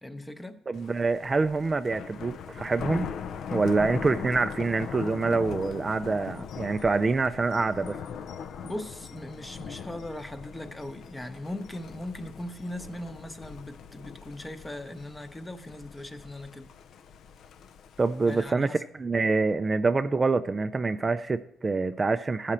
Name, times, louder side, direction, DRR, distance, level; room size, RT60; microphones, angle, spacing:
voice 1, 0.0-0.6 8.6-16.7 18.3-18.8, left 1 dB, 10° left, 0.8 m, -39 dB
Thunder, 0.7-18.5, left 7 dB, 70° left, 0.4 m, -40 dB
voice 2, 0.7-3.1 3.5-8.0 18.0-22.5, right 3 dB, 30° right, 0.3 m, -26 dB
14.5 x 5.0 x 4.3 m
cardioid pair, 90°, 0 cm